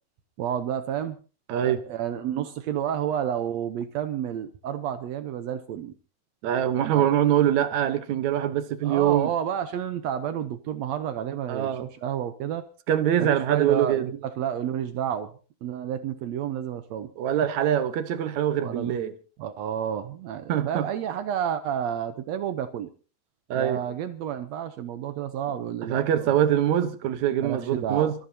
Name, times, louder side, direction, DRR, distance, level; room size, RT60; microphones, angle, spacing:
voice 1, 0.4-1.2 1.6-5.9 6.9-7.1 8.8-12.7 13.2-15.3 15.6-17.1 18.6-19.0 19.4-22.9 23.5-26.3 27.4-28.1, right 9 dB, 85° right, 1.5 m, -30 dB
voice 2, 1.5-1.8 6.4-9.3 11.5-11.8 12.9-14.1 17.2-19.1 20.5-20.9 23.5-23.8 25.8-28.1, right 10 dB, 65° right, 2.0 m, -24 dB
28.0 x 14.0 x 2.8 m
omnidirectional pair, 4.2 m